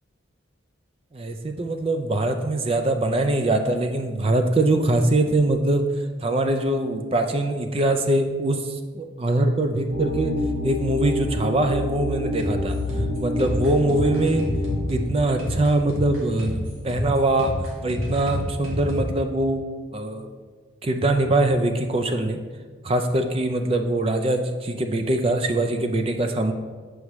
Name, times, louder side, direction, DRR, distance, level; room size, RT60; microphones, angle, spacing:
voice 1, 1.1-5.8 6.2-10.3 10.6-12.8 13.2-14.5 14.9-17.6 17.8-19.6 19.9-20.3 20.8-22.4 22.8-26.5, right 2 dB, 30° right, 6 dB, 0.4 m, -23 dB
sound 1, 9.9-14.9, left 1 dB, 45° right, 0.9 m, -27 dB
sound 2, 12.3-19.1, equal, 90° right, 1.6 m, -29 dB
8.1 x 4.7 x 3.1 m, 1.5 s
head